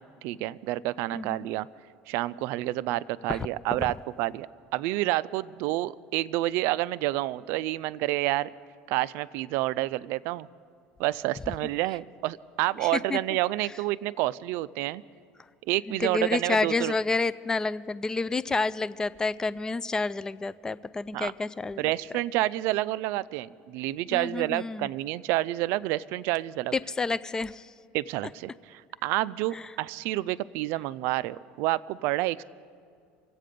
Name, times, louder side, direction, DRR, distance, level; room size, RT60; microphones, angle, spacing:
voice 1, 0.0-1.7 2.1-8.5 8.9-10.5 11.0-15.0 15.7-16.9 21.1-21.3 21.8-26.7 27.9-28.5 29.0-32.4, right 17 dB, 70° right, 19 dB, 0.3 m, -29 dB
voice 2, 1.1-1.5 3.3-3.5 3.8-3.9 12.8-13.2 15.9-21.8 24.1-24.9 26.7-27.7 29.5-29.7, left 3 dB, 15° left, 16 dB, 0.3 m, -29 dB
25.0 x 8.4 x 5.1 m, 2.3 s
cardioid pair, 125°, 4 cm